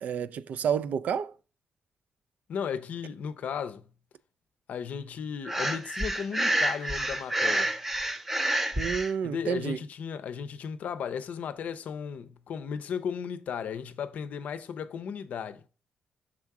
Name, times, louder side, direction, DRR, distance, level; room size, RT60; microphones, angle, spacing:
voice 1, 0.0-1.3 8.8-9.8, right 7 dB, 65° right, 0.3 m, -30 dB
voice 2, 2.5-3.9 4.7-7.7 9.2-15.6, left 7 dB, 65° left, 0.5 m, -35 dB
Breathing, 5.4-9.1, right 1 dB, 10° right, 0.5 m, -28 dB
6.1 x 3.6 x 4.6 m
wide cardioid pair, 145°, 3 cm